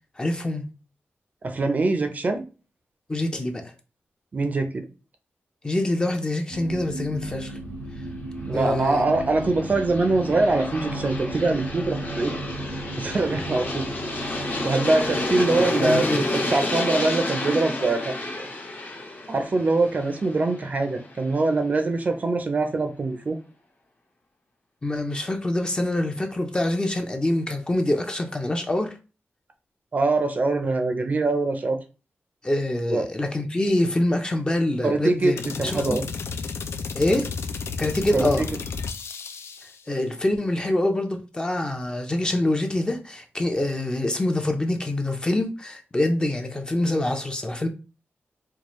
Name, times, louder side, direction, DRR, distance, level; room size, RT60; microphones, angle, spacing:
voice 1, 0.2-0.7 3.1-3.7 5.6-7.6 8.5-9.0 15.8-16.2 24.8-28.9 32.4-36.0 36.9-37.3 37.8-38.5 39.9-47.7, left 1 dB, 20° left, 0.5 m, -25 dB
voice 2, 1.4-2.4 4.3-4.9 8.5-12.3 13.0-13.9 14.6-16.2 16.5-18.5 19.3-23.4 29.9-31.8 32.9-33.1 34.8-36.0 38.1-38.5, right 3 dB, 40° right, 0.5 m, -23 dB
sound 1, 6.5-16.5 17.1-17.2, right 2 dB, 80° right, 0.7 m, -36 dB
Aircraft, 8.5-21.4, left 2 dB, 45° left, 0.8 m, -31 dB
sound 2, 35.4-39.8, left 5 dB, 80° left, 0.4 m, -32 dB
4.5 x 2.4 x 3.0 m
wide cardioid pair, 170°, 4 cm